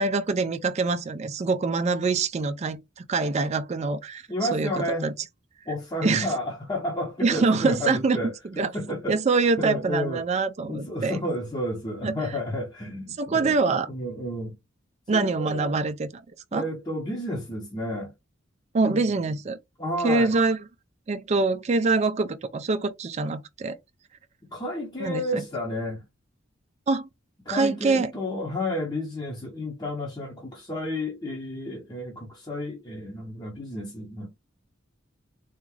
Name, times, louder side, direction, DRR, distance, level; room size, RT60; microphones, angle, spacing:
voice 1, 0.0-4.2 4.5-5.1 6.0-6.3 7.2-8.7 9.1-11.2 12.0-12.2 13.2-13.9 15.1-16.1 16.5-16.7 18.7-19.6 20.0-20.6 21.1-23.8 25.0-25.4 26.9-27.1 27.5-28.1, right 3 dB, 35° right, 0.4 m, -25 dB
voice 2, 4.3-5.1 5.7-9.2 9.6-10.2 10.7-13.5 13.9-14.5 15.1-15.8 16.5-18.1 18.8-19.0 19.8-20.4 24.5-26.0 27.4-34.3, left 1 dB, 20° left, 0.8 m, -31 dB
3.5 x 2.5 x 3.2 m
head